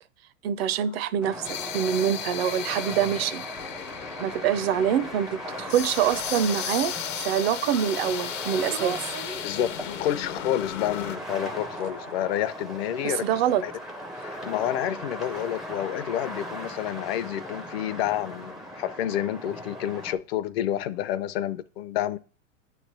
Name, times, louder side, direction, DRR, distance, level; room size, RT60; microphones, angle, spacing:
voice 1, 0.4-3.5 4.2-9.1 13.0-13.6, right 9 dB, 55° right, 0.5 m, -25 dB
sound 1, 0.6-11.2, left 9 dB, 75° left, 1.1 m, -35 dB
sound 2, 1.2-20.1, equal, ahead, 0.4 m, -38 dB
sound 3, 5.1-14.2, right 6 dB, 85° right, 0.9 m, -45 dB
voice 2, 9.4-13.3 13.6-13.7 14.2-22.2, left 11 dB, 50° left, 0.6 m, -29 dB
8.5 x 3.3 x 6.5 m
hypercardioid pair, 130°, 38 cm